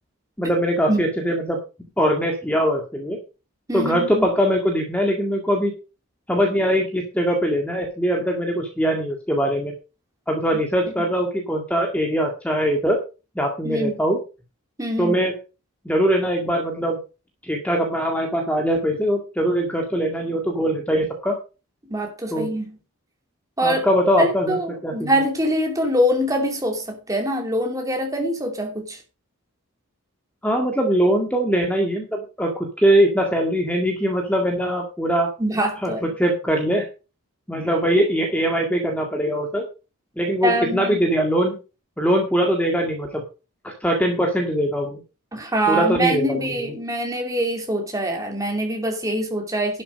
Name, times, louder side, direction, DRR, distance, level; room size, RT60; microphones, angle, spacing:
voice 1, 0.4-1.6 2.0-3.2 3.7-5.7 6.3-9.7 10.3-13.0 13.4-14.2 15.0-15.3 15.9-17.0 17.4-21.4 22.3-22.5 23.6-25.2 30.4-35.3 35.8-36.9 37.5-39.6 40.2-41.6 42.0-43.2 43.6-45.0 45.7-46.7, equal, 5° left, 1.9 m, -22 dB
voice 2, 3.7-4.3 10.5-10.6 13.6-14.0 14.8-15.2 21.9-22.8 23.6-23.9 24.2-29.0 35.4-36.1 40.4-41.0 45.3-49.8, right 1 dB, 15° right, 2.7 m, -24 dB
11.5 x 7.4 x 5.2 m
head